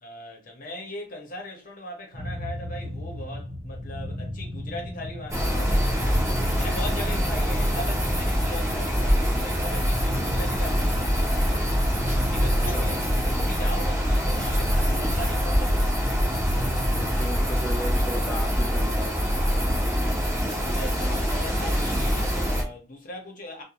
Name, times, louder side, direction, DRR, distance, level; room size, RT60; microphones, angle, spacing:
voice 1, 0.0-6.3 6.5-11.8 12.2-16.2 20.1-23.6, left 1 dB, 45° left, 0.9 m, -39 dB
sound 1, 2.1-17.9, left 1 dB, 85° right, 0.8 m, -35 dB
sound 2, 5.3-22.6, equal, 15° right, 0.8 m, -24 dB
voice 2, 17.0-19.1, equal, 10° left, 0.5 m, -35 dB
2.6 x 2.2 x 2.9 m
head